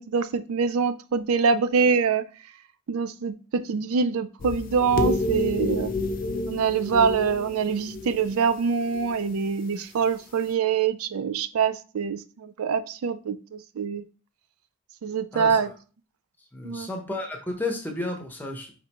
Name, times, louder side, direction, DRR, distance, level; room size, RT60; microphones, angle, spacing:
voice 1, 0.0-2.2 2.9-5.9 6.5-14.0 15.0-15.7 16.6-16.9, right 6 dB, 85° right, 0.4 m, -25 dB
sound 1, 4.4-8.5 8.9-9.2, left 2 dB, 40° left, 0.4 m, -29 dB
voice 2, 16.5-18.7, left 2 dB, 10° left, 0.8 m, -32 dB
4.9 x 3.3 x 2.9 m
head